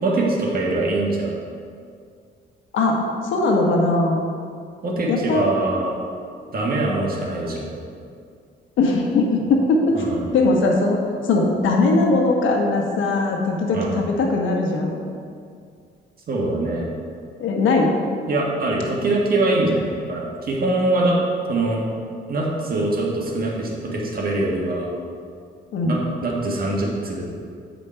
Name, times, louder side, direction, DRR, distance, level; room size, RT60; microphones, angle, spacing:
voice 1, 0.0-1.4 4.8-6.0 6.5-7.7 9.9-10.3 13.7-14.0 16.3-16.9 18.3-21.2 21.5-21.8 22.3-24.9 25.8-27.2, right 2 dB, 50° right, -2 dB, 1.7 m, -23 dB
voice 2, 2.7-4.2 5.1-5.5 8.8-10.0 10.3-11.0 11.3-15.0 17.4-17.9 25.7-26.0, left 3 dB, 80° left, 1 dB, 1.2 m, -20 dB
8.1 x 5.1 x 4.5 m, 2.3 s
cardioid pair, 90°, 20 cm